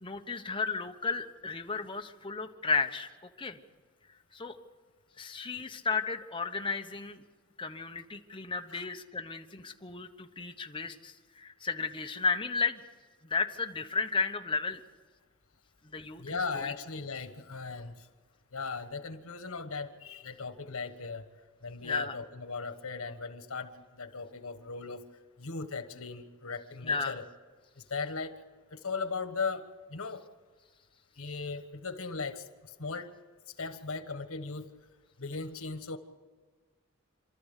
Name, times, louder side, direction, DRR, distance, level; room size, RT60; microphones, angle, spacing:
voice 1, 0.0-3.1 3.4-3.6 4.3-4.6 5.2-7.2 7.6-12.8 13.2-14.8 15.8-16.7 21.8-22.1 26.8-27.1, left 4 dB, 25° left, 5 dB, 1.1 m, -33 dB
voice 2, 16.2-18.1 18.5-21.3 21.6-25.1 25.4-27.2 27.8-28.4 28.7-29.6 29.9-30.2 31.2-33.1 33.5-34.7 35.2-36.0, left 4 dB, 90° left, 9 dB, 1.4 m, -38 dB
27.5 x 13.0 x 8.3 m, 1.5 s
head